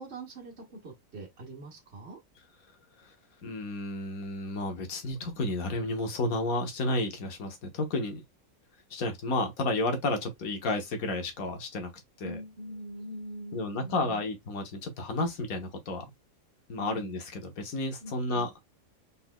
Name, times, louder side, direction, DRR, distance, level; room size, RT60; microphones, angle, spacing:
voice 1, 0.0-2.2 12.2-14.2 16.8-17.1 18.0-18.5, right 1 dB, 50° right, 1.3 m, -43 dB
voice 2, 3.4-8.2 8.9-11.9 12.2-12.4 13.5-16.0 16.7-18.5, left 2 dB, 90° left, 1.6 m, -31 dB
4.3 x 4.0 x 2.2 m
omnidirectional pair, 1.5 m